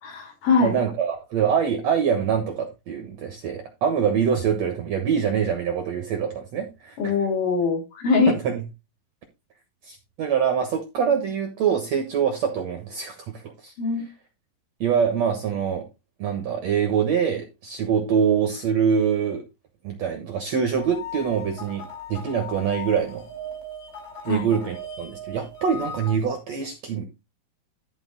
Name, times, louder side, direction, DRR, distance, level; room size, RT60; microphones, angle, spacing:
voice 1, 0.0-0.8 7.0-8.4 13.8-14.0 24.3-24.5, left 4 dB, 55° left, 2 dB, 3.9 m, -22 dB
voice 2, 0.6-7.1 8.3-8.6 9.8-13.7 14.8-15.8 16.2-19.4 19.8-23.2 24.2-27.0, right 7 dB, 75° right, 5 dB, 1.6 m, -24 dB
sound 1, 20.8-26.1, left 2 dB, 70° left, 6.2 m, -38 dB
12.5 x 5.0 x 4.0 m, 0.26 s
omnidirectional pair, 5.1 m